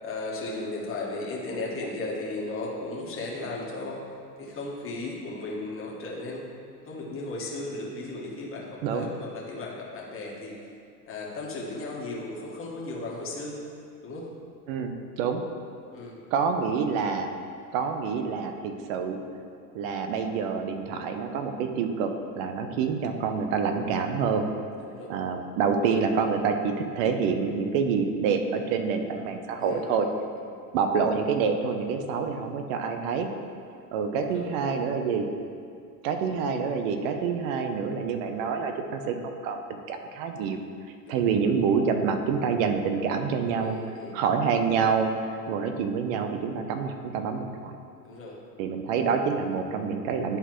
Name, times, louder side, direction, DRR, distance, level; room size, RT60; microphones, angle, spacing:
voice 1, 0.0-4.0 4.4-6.5 6.8-10.5 11.1-13.6 14.0-14.3 15.9-16.2 24.8-25.1 29.6-30.4 34.2-34.5 41.0-41.3 43.6-44.2 48.0-48.4, left 2 dB, 25° left, -4 dB, 1.6 m, -36 dB
voice 2, 14.7-15.4 16.3-17.3 17.7-19.2 19.7-24.5 25.1-30.1 30.7-33.3 33.9-35.3 36.0-40.6 41.1-43.8 44.1-47.8 48.6-50.4, right 6 dB, 55° right, 6 dB, 0.8 m, -27 dB
11.0 x 4.0 x 3.1 m, 2.4 s
hypercardioid pair, 95°, 48 cm